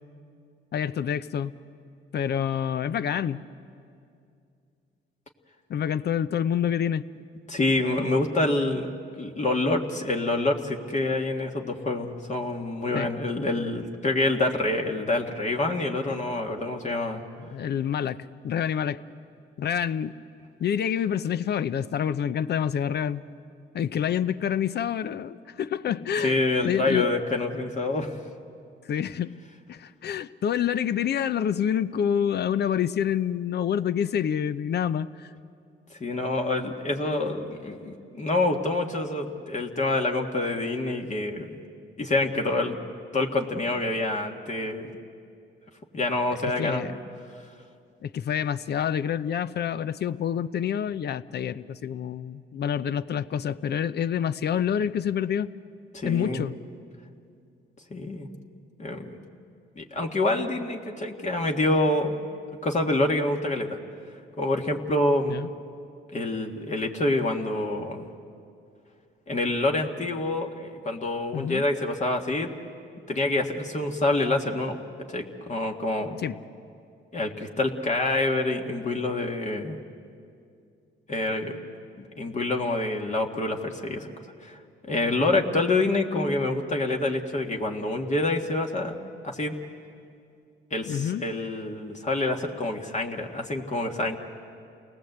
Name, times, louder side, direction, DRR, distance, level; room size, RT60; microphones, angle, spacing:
voice 1, 0.7-1.5 2.1-3.4 5.7-7.1 12.9-13.1 17.4-19.0 19.6-20.2 20.6-23.2 23.7-27.1 28.9-29.4 29.7-35.3 46.4-47.0 48.0-55.5 56.0-56.5 65.3-65.5 71.3-71.6 76.2-76.4 90.8-91.2, left 8 dB, 55° left, 15 dB, 0.7 m, -27 dB
voice 2, 7.5-8.9 9.2-17.2 26.2-28.1 35.9-41.6 42.0-42.7 43.1-44.9 45.9-47.0 55.9-56.4 57.9-58.3 58.8-59.2 59.8-62.2 62.6-63.8 64.4-65.4 66.1-68.1 69.3-72.5 73.1-74.8 75.1-76.2 77.1-79.8 81.1-81.6 82.0-84.1 84.4-84.6 84.8-88.9 89.2-89.6 90.7-94.2, left 2 dB, 35° left, 2 dB, 1.8 m, -27 dB
29.0 x 19.0 x 8.0 m, 2.5 s
cardioid pair, 90°, 20 cm